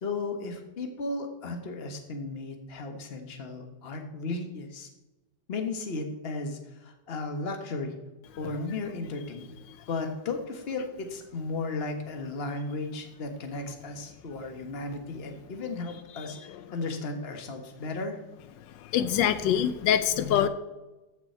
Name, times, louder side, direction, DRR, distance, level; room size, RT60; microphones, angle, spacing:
voice 1, 0.0-4.9 5.5-7.9 8.4-9.6 9.9-18.2, left 3 dB, 35° left, 5 dB, 1.4 m, -35 dB
voice 2, 18.9-20.5, left 9 dB, 85° left, 12 dB, 1.3 m, -24 dB
14.0 x 6.1 x 4.4 m, 1.1 s
omnidirectional pair, 1.9 m